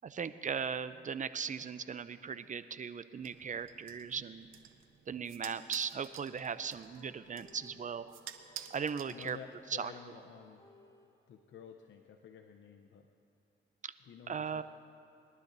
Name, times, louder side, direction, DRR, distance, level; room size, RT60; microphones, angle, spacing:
voice 1, 0.0-4.5 5.1-8.2 8.7-9.4 9.8-9.9 13.8-13.9 14.3-14.6, right 6 dB, 40° right, 14 dB, 0.5 m, -38 dB
sound 1, 3.2-9.7, right 10 dB, 85° right, 0.7 m, -51 dB
sound 2, 6.6-11.4, equal, 15° left, 3.4 m, -62 dB
voice 2, 9.1-10.6 11.3-13.1 14.0-14.6, left 7 dB, 70° left, 4 dB, 0.7 m, -51 dB
21.5 x 11.5 x 2.7 m, 2.8 s
cardioid pair, 70°, 20 cm